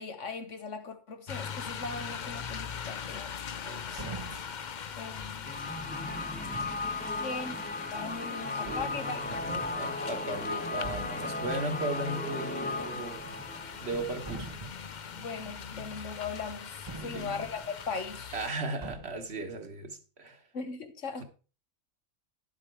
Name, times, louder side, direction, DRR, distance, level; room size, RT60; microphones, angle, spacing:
voice 1, 0.0-3.3 5.0-5.5 7.0-7.6 7.9-9.8 15.1-18.4 20.5-21.2, left 4 dB, 75° left, 1.8 m, -39 dB
sound 1, 1.3-18.5, left 7 dB, 45° left, 0.7 m, -41 dB
voice 2, 3.6-4.4 8.6-9.0 9.7-13.2 13.8-14.5 17.0-17.4 18.3-20.4, right 2 dB, 55° right, 1.6 m, -37 dB
sound 2, 4.0-4.6 6.2-6.9 8.1-8.2 8.6-9.9 10.4-10.5 10.8-11.3 12.9-13.5 13.8-14.9 16.9-17.8 18.8-19.3, right 3 dB, 25° right, 0.8 m, -44 dB
sound 3, 5.5-15.2, left 2 dB, 10° left, 0.7 m, -36 dB
11.0 x 7.8 x 4.6 m
omnidirectional pair, 1.3 m